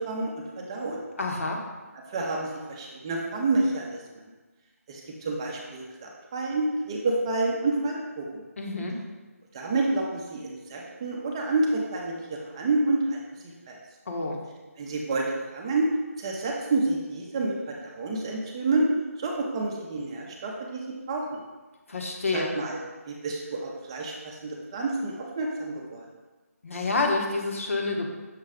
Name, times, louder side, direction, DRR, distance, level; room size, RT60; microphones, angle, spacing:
voice 1, 0.0-1.0 2.1-4.0 4.9-8.4 9.5-13.8 14.8-15.9 16.2-18.9 19.2-21.4 22.3-22.8 23.1-26.1, right 2 dB, 20° right, -1 dB, 0.7 m, -29 dB
voice 2, 1.2-1.6 8.6-9.0 14.1-14.4 21.9-22.5 26.6-28.1, left 3 dB, 55° left, 1 dB, 1.2 m, -28 dB
6.5 x 3.1 x 5.0 m, 1.2 s
figure-of-eight pair, 165°, 9 cm